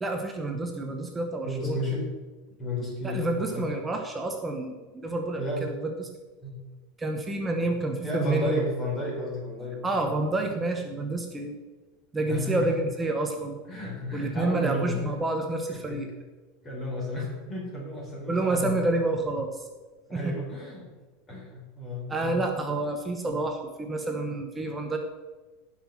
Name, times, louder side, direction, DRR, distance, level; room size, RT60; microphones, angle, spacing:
voice 1, 0.0-1.8 3.0-6.1 7.0-8.6 9.8-11.6 12.1-13.6 14.1-16.1 18.3-19.7 20.1-20.3 22.1-25.0, right 2 dB, 10° right, 3 dB, 1.0 m, -29 dB
voice 2, 1.4-2.1 2.6-3.7 5.4-5.7 6.4-6.6 8.0-10.1 12.3-12.7 13.7-15.0 15.9-16.0 16.6-18.7 20.1-20.9 21.3-22.1, left 1 dB, 20° left, -2 dB, 4.2 m, -32 dB
17.0 x 5.9 x 5.9 m, 1.3 s
supercardioid pair, 160°, 0 cm